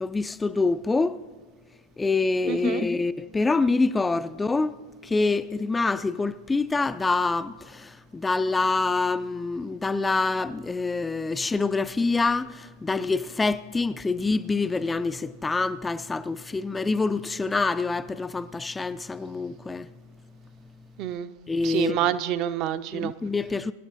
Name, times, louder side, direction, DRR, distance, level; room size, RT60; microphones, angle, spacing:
voice 1, 0.0-1.2 2.0-19.9 21.5-22.0 22.9-23.7, left 3 dB, 10° left, 0.3 m, -26 dB
voice 2, 2.5-2.8 21.0-21.3 21.6-23.1, right 11 dB, 40° right, 0.6 m, -27 dB
23.5 x 11.5 x 2.5 m
figure-of-eight pair, 90°, 0 cm